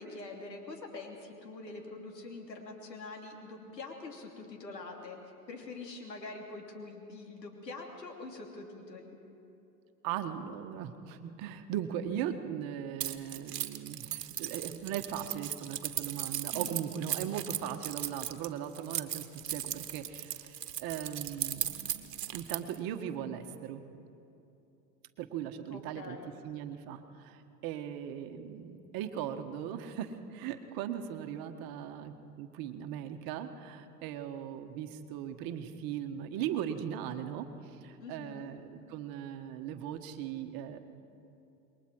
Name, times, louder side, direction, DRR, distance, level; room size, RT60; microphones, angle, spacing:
voice 1, 0.0-5.2 5.5-9.2 16.5-16.9 25.7-26.3 38.0-38.5, left 3 dB, 90° left, 1 dB, 3.2 m, -45 dB
voice 2, 10.0-19.2 19.5-23.8 25.2-26.2 26.4-37.5 37.8-40.8, right 9 dB, 45° right, 7 dB, 1.6 m, -39 dB
Keys jangling, 13.0-22.8, right 11 dB, 75° right, 1.4 m, -37 dB
28.0 x 21.5 x 4.8 m, 2.8 s
hypercardioid pair, 95°, 48 cm